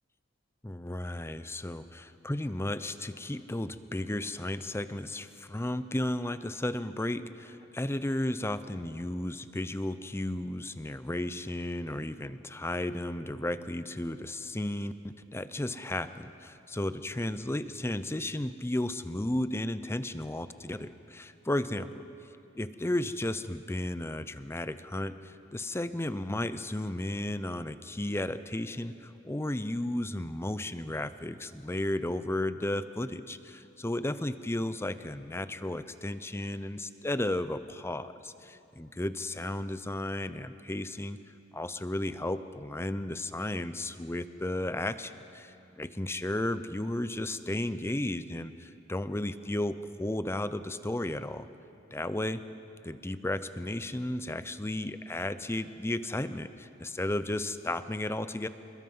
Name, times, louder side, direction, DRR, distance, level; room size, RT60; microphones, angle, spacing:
voice 1, 0.6-22.0 22.6-41.2 41.5-51.5 51.9-52.4 52.8-58.5, left 1 dB, 15° left, 13 dB, 0.6 m, -34 dB
28.0 x 21.0 x 5.5 m, 2.8 s
head